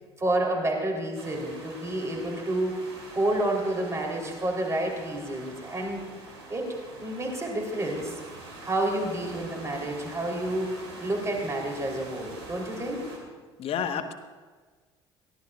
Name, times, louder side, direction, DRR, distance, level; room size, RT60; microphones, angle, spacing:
voice 1, 0.2-6.0 6.5-8.2 8.6-10.7 11.0-13.1, right 1 dB, 20° right, 0 dB, 3.7 m, -29 dB
sound 1, 1.2-13.2, right 2 dB, 75° right, 2.7 m, -45 dB
voice 2, 13.6-14.1, left 8 dB, 45° left, 8 dB, 1.3 m, -30 dB
23.0 x 17.0 x 2.5 m, 1.4 s
figure-of-eight pair, 60°, 14 cm